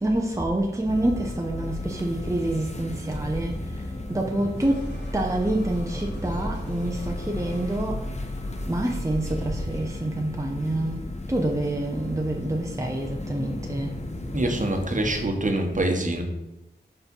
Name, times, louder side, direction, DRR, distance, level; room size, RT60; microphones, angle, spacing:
voice 1, 0.0-3.6 4.1-8.0 8.7-11.0 11.3-13.9, right 1 dB, 15° right, 1 dB, 0.8 m, -27 dB
sound 1, 0.9-15.3, left 2 dB, 40° left, 0.8 m, -35 dB
sound 2, 2.0-9.8, left 1 dB, 70° left, 1.8 m, -38 dB
voice 2, 14.3-16.2, right 1 dB, 45° right, 3 dB, 1.2 m, -25 dB
5.3 x 4.9 x 5.4 m, 0.93 s
wide cardioid pair, 75°, 18 cm